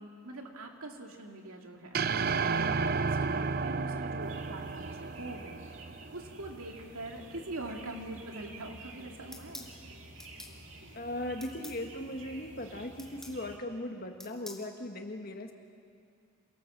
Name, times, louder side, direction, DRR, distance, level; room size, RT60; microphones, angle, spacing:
voice 1, 0.0-5.8 6.1-9.7, right 2 dB, 85° right, 2 dB, 2.5 m, -43 dB
sound 1, 1.9-6.3, right 4 dB, 45° right, 0.5 m, -32 dB
sound 2, 4.2-13.6, right 2 dB, 60° right, 2.2 m, -50 dB
sound 3, 9.3-9.7 10.2-10.6 11.4-11.8 13.0-13.4 14.2-14.7, left 2 dB, ahead, 1.9 m, -46 dB
voice 2, 10.9-15.5, left 1 dB, 45° left, 4 dB, 1.6 m, -38 dB
27.5 x 18.5 x 7.4 m, 2.3 s
head